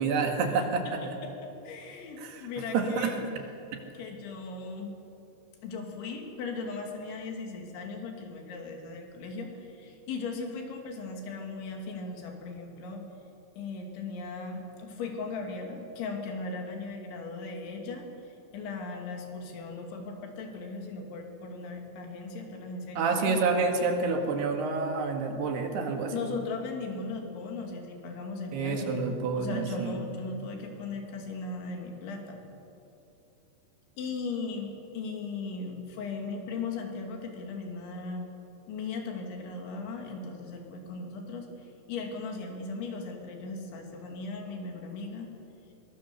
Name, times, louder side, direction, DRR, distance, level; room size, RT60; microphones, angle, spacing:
voice 1, 0.0-1.0 2.2-2.5 2.7-3.4 23.0-26.3 28.5-29.9, right 4 dB, 70° right, 3 dB, 3.8 m, -28 dB
voice 2, 0.9-3.2 4.0-4.9 5.6-13.1 13.6-24.0 26.1-29.0 29.3-32.4 34.0-38.3 38.7-45.3, left 4 dB, 90° left, 2 dB, 4.9 m, -38 dB
22.5 x 22.0 x 6.9 m, 2.9 s
omnidirectional pair, 5.1 m